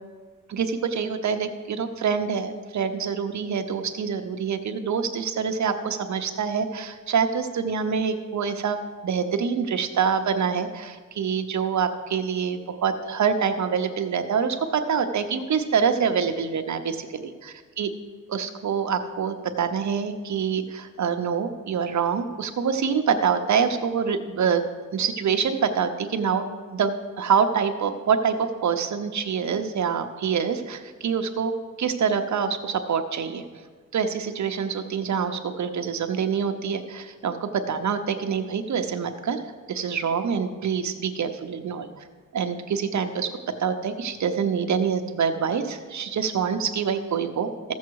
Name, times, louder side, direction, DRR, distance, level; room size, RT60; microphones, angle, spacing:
voice 1, 0.5-17.9 18.3-24.6 24.9-31.5 31.8-33.4 33.9-41.9 42.3-43.3 43.6-47.7, right 6 dB, 55° right, 6 dB, 0.8 m, -26 dB
14.0 x 7.3 x 4.7 m, 1.5 s
wide cardioid pair, 160°, 33 cm